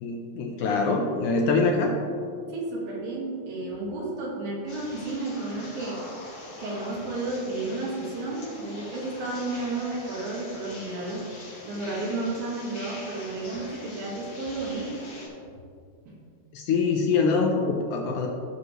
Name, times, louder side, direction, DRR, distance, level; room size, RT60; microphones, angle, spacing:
voice 1, 0.0-1.9 16.5-18.3, left 4 dB, 75° left, 1 dB, 2.1 m, -24 dB
voice 2, 2.5-6.0 6.6-11.2 11.7-15.2 16.1-16.2, right 2 dB, 80° right, -3 dB, 3.6 m, -32 dB
sound 1, 4.7-15.3, left 1 dB, 40° left, 2.9 m, -43 dB
16.0 x 6.0 x 3.3 m, 2.4 s
omnidirectional pair, 4.2 m